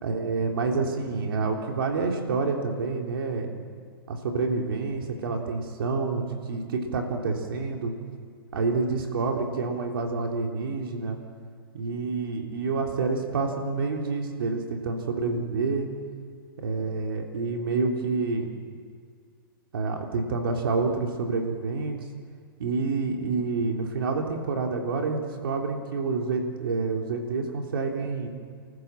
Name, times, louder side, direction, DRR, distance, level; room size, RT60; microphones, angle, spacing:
voice 1, 0.0-3.5 4.1-7.9 8.5-11.2 11.7-15.9 16.6-18.5 19.7-22.0 22.6-28.3, right 4 dB, 75° right, 2 dB, 3.4 m, -28 dB
29.5 x 14.5 x 7.5 m, 2.1 s
hypercardioid pair, 125°, 12 cm